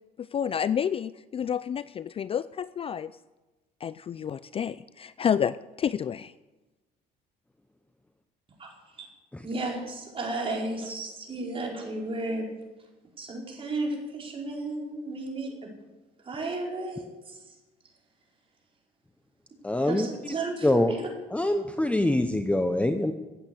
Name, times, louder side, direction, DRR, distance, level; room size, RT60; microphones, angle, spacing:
voice 1, 0.2-3.1 3.8-6.3, left 8 dB, 35° left, 16 dB, 0.4 m, -29 dB
voice 2, 9.4-12.5 13.2-15.5 16.2-17.5 19.9-21.1, right 2 dB, 30° right, -1 dB, 4.9 m, -33 dB
voice 3, 19.6-20.1 20.6-20.9 21.3-23.1, left 1 dB, 5° left, 7 dB, 0.8 m, -24 dB
14.5 x 8.8 x 8.5 m, 1.1 s
cardioid pair, 110°, 17 cm